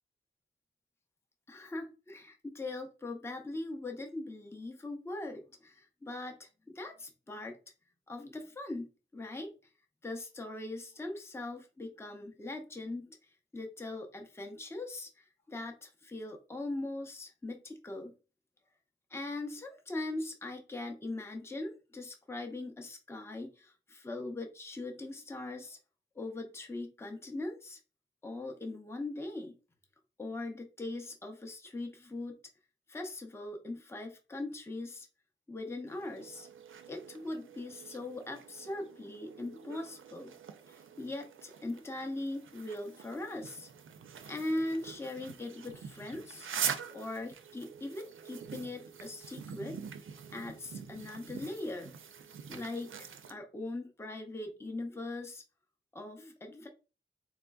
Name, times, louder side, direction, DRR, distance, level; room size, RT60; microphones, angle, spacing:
voice 1, 1.5-6.5 6.7-7.6 8.1-9.5 10.0-18.1 19.1-25.8 26.1-27.8 28.2-29.6 30.2-32.4 32.9-35.1 35.5-36.5 36.9-40.3 40.7-43.7 44.3-46.5 46.9-51.9 52.5-55.4 55.9-56.7, left 2 dB, 10° left, 3 dB, 0.5 m, -40 dB
sound 1, 35.9-53.3, right 7 dB, 80° right, 0.4 m, -44 dB
3.7 x 3.1 x 2.3 m, 0.33 s
wide cardioid pair, 130°, 20 cm